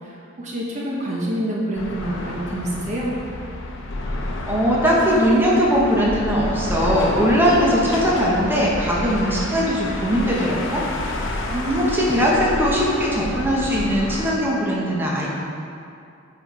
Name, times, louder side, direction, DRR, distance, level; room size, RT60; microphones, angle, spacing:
voice 1, 0.0-3.1, right 1 dB, 35° right, -4 dB, 1.0 m, -27 dB
sound 1, 1.8-14.3, left 1 dB, 65° left, 0.7 m, -30 dB
voice 2, 4.5-10.8 11.2-15.4, equal, 10° right, -5 dB, 1.0 m, -20 dB
8.4 x 4.3 x 4.8 m, 2.5 s
head